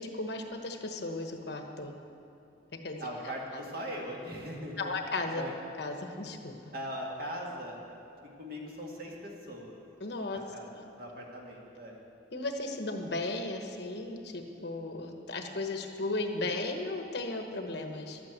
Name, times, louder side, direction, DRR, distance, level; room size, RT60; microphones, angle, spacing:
voice 1, 0.0-1.9 2.8-3.0 3.5-3.6 4.8-5.4 5.8-6.7 10.0-10.4 10.7-10.8 12.3-18.2, left 2 dB, 60° left, 4 dB, 1.1 m, -35 dB
voice 2, 3.0-4.8 5.4-5.6 6.7-7.8 8.4-9.8 10.3-12.0, equal, 50° right, -2 dB, 2.0 m, -40 dB
12.0 x 8.9 x 8.1 m, 2.7 s
head